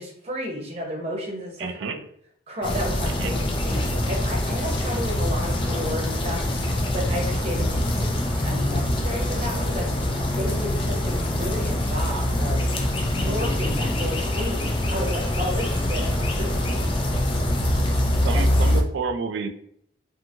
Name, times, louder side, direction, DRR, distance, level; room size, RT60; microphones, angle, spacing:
voice 1, 0.0-2.0 2.5-6.4 6.9-10.0 10.4-12.6 13.1-17.0 17.8-18.4, equal, 35° right, 0 dB, 0.7 m, -32 dB
voice 2, 1.6-2.0 3.2-3.3 18.2-19.5, right 5 dB, 80° right, 7 dB, 0.4 m, -29 dB
sound 1, 2.6-18.8, left 1 dB, 25° left, 0.3 m, -24 dB
2.6 x 2.6 x 2.7 m, 0.67 s
head